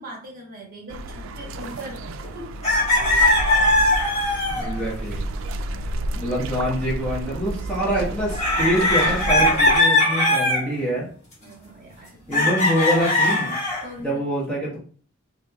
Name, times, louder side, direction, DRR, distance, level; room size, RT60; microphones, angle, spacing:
voice 1, 0.0-2.0 2.3-2.6 5.7-5.8 11.4-12.6 13.8-14.2, equal, 45° right, -1 dB, 1.2 m, -40 dB
sound 1, 0.9-9.8, right 2 dB, 70° right, 0.3 m, -31 dB
sound 2, 2.2-2.3 2.6-4.9 8.3-10.7 12.3-13.9, left 1 dB, 35° left, 1.5 m, -20 dB
voice 2, 4.5-5.2 6.1-11.1 12.3-13.5 14.0-14.8, equal, 5° left, -6 dB, 1.0 m, -25 dB
4.1 x 2.6 x 2.3 m, 0.42 s
head